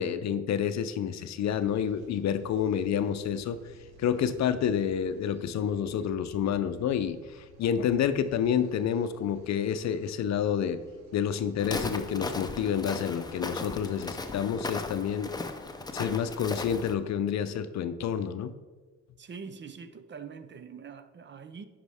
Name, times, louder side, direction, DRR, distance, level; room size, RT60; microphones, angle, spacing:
voice 1, 0.0-3.6 4.0-10.8 11.1-15.3 15.9-18.5, left 8 dB, 65° left, 11 dB, 0.6 m, -29 dB
sound 1, 1.4-17.2, right 3 dB, 60° right, 1.3 m, -54 dB
Walk footsteps, 11.6-16.9, left 3 dB, 15° left, 0.6 m, -36 dB
voice 2, 19.2-21.6, right 6 dB, 40° right, 11 dB, 0.6 m, -44 dB
9.6 x 5.1 x 3.5 m, 1.3 s
cardioid pair, 90°, 30 cm